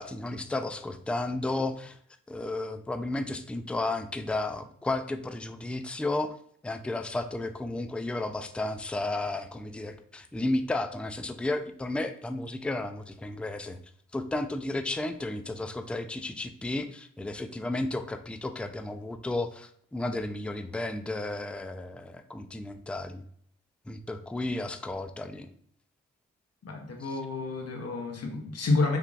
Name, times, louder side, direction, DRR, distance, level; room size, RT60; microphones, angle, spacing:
voice 1, 0.0-2.0 2.3-6.4 6.6-13.8 14.1-23.2 23.9-25.5 27.0-27.2, left 2 dB, 5° left, 8 dB, 0.4 m, -33 dB
voice 2, 26.6-29.0, left 3 dB, 50° left, 2 dB, 0.9 m, -29 dB
3.3 x 3.2 x 2.4 m, 0.63 s
supercardioid pair, 40°, 31 cm